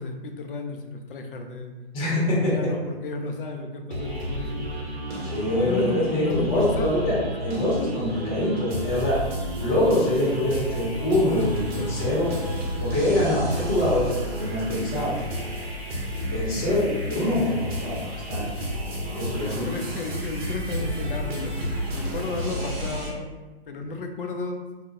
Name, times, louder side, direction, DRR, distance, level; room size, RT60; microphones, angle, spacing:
voice 1, 0.0-1.7 2.2-5.0 5.6-7.1 16.6-17.0 19.4-21.6 21.9-23.3 23.7-24.7, left 3 dB, 60° left, 4 dB, 0.4 m, -33 dB
voice 2, 1.9-2.7 5.2-9.2 9.6-12.4 12.8-15.3 16.3-18.5 19.1-19.6, left 1 dB, 25° left, -6 dB, 0.9 m, -24 dB
sound 1, 3.9-23.1, equal, 70° right, 0.8 m, -31 dB
2.4 x 2.2 x 2.7 m, 1.2 s
figure-of-eight pair, 120°, 32 cm